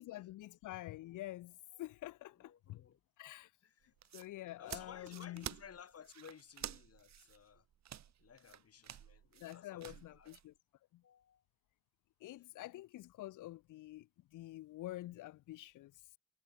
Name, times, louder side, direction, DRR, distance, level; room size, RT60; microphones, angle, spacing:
voice 1, 0.0-2.8 3.2-3.5 4.1-5.5 9.4-10.5 10.9-11.0 12.2-16.0, left 16 dB, 90° left, 4.0 m, -48 dB
voice 2, 2.4-3.0 3.3-3.9 4.6-7.7 8.2-10.4 11.0-11.4, left 8 dB, 50° left, 5.7 m, -57 dB
sound 1, 3.8-10.4, right 10 dB, 60° right, 2.9 m, -50 dB
cardioid pair, 90°, 30 cm